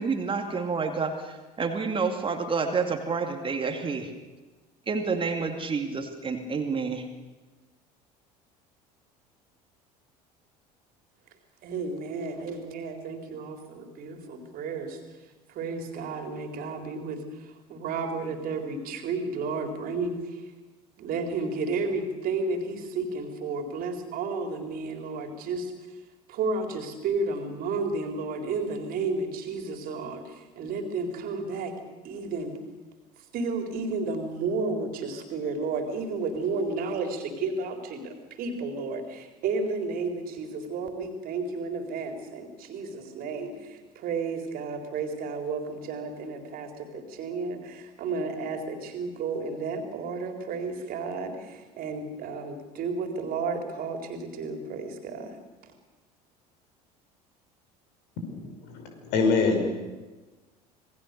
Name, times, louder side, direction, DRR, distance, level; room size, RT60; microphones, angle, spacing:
voice 1, 0.0-4.1 4.9-7.1, right 4 dB, 25° right, 5 dB, 2.4 m, -29 dB
voice 2, 11.6-15.0 15.5-20.4 21.0-25.7 26.3-31.7 32.0-32.6 33.3-55.4, right 4 dB, 45° right, 5 dB, 3.8 m, -32 dB
voice 3, 58.3-59.8, left 4 dB, 55° left, 4 dB, 5.2 m, -25 dB
27.0 x 20.0 x 6.8 m, 1.2 s
figure-of-eight pair, 65°, 20 cm